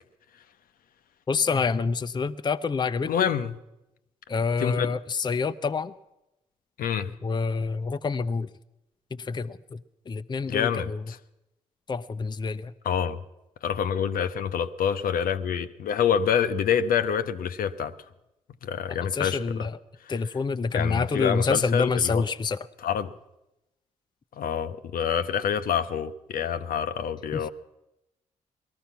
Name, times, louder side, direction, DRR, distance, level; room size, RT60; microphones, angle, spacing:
voice 1, 1.3-3.3 4.3-5.9 7.2-8.5 9.1-9.8 10.1-11.0 11.9-12.7 19.1-19.8 20.1-22.7 27.3-27.4, left 4 dB, 30° left, 0.5 m, -27 dB
voice 2, 3.1-3.6 4.6-4.9 6.8-7.1 10.5-11.2 12.8-13.2 13.6-17.9 18.6-19.7 20.7-22.2 22.8-23.1 24.4-27.5, left 8 dB, 65° left, 0.7 m, -27 dB
18.5 x 13.0 x 5.8 m
hypercardioid pair, 50°, 16 cm